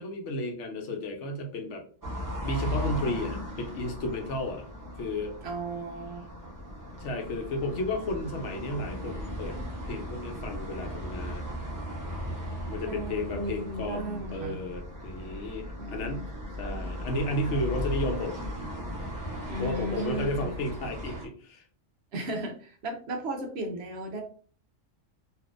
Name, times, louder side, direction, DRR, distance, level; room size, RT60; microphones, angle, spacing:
voice 1, 0.0-1.8 2.4-4.6 5.0-5.3 7.0-9.6 9.9-11.5 12.7-16.3 16.6-18.4 19.6-21.6, left 1 dB, 65° left, 3 dB, 1.0 m, -33 dB
sound 1, 2.0-21.3, equal, 20° right, 0.7 m, -37 dB
voice 2, 5.4-6.3 12.9-14.6 15.8-16.6 19.5-20.5 22.1-24.2, right 1 dB, 65° right, 4 dB, 0.8 m, -35 dB
3.4 x 2.5 x 2.4 m, 0.42 s
omnidirectional pair, 1.3 m